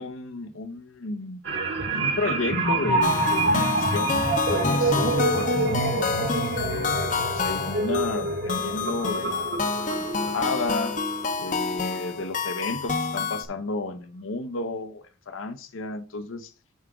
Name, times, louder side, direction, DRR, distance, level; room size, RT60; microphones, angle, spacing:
voice 1, 0.0-1.4 2.0-4.2 4.5-10.9 11.4-16.5, left 3 dB, 85° left, 0.8 m, -32 dB
sound 1, 1.4-12.2 12.6-12.8, right 2 dB, 60° right, 1.9 m, -27 dB
Centaur Forest, 3.0-13.5, left 4 dB, 40° left, 0.7 m, -29 dB
7.3 x 3.5 x 6.0 m
head